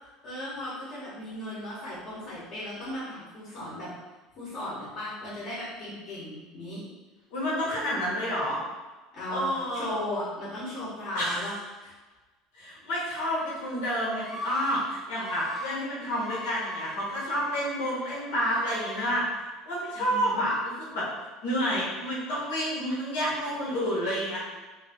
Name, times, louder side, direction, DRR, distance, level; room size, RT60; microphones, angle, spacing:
voice 1, 0.2-3.9 4.4-6.8 9.1-11.5 11.8-11.9 19.9-20.4, left 1 dB, 40° left, -8 dB, 1.2 m, -36 dB
voice 2, 7.3-8.6 9.3-10.0 11.1-11.5 12.6-19.3 19.7-21.1 21.4-24.4, equal, 80° left, -6 dB, 1.5 m, -29 dB
Screaming, 13.0-13.6 14.1-14.8 15.1-15.7 16.0-17.9 18.4-19.1, left 2 dB, 25° left, 0.8 m, -40 dB
3.2 x 2.8 x 3.5 m, 1.2 s
cardioid pair, 175°, 0 cm